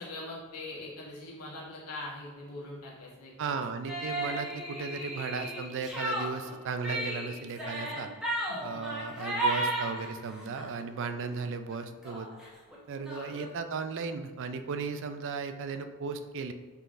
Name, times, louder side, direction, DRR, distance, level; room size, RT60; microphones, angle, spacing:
voice 1, 0.0-3.5 8.5-8.8 13.1-13.4, left 2 dB, 85° left, -5 dB, 1.2 m, -42 dB
voice 2, 3.4-8.1 8.6-12.3 12.9-16.5, right 5 dB, 55° right, 9 dB, 0.4 m, -36 dB
sound 1, 3.9-10.7 11.1-11.5 11.7-11.8 12.0-13.5, right 1 dB, 5° right, 0.9 m, -35 dB
5.5 x 3.7 x 2.5 m, 1.3 s
head